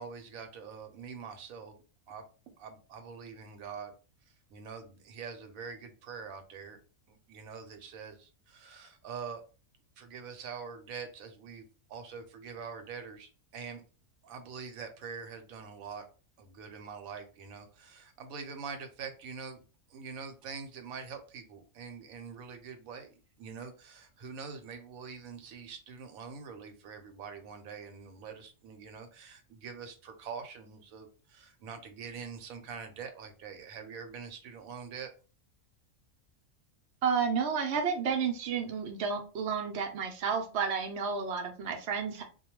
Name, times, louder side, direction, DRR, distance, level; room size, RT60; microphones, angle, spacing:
voice 1, 0.0-1.7 2.1-2.2 2.6-3.9 4.5-6.8 7.1-9.4 10.0-13.8 14.2-16.0 16.4-19.6 19.9-35.1, right 6 dB, 80° right, 7 dB, 1.0 m, -44 dB
voice 2, 37.0-42.2, right 6 dB, 65° right, 3 dB, 0.7 m, -31 dB
2.3 x 2.2 x 2.9 m, 0.35 s
omnidirectional pair, 1.4 m